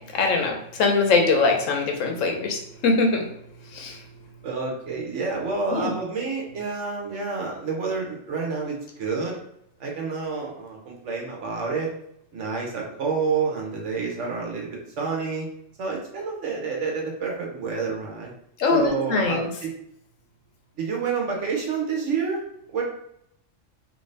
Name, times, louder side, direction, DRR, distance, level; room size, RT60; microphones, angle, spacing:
voice 1, 0.1-3.3 3.7-4.0 5.7-5.9 18.6-19.5, left 3 dB, 85° left, 2 dB, 1.1 m, -22 dB
voice 2, 4.4-9.4 9.8-11.9 12.3-14.7 15.0-15.5 15.8-18.3 18.7-19.7 20.8-22.4 22.7-22.8, right 5 dB, 70° right, -1 dB, 1.2 m, -28 dB
3.0 x 2.7 x 3.2 m, 0.73 s
omnidirectional pair, 1.3 m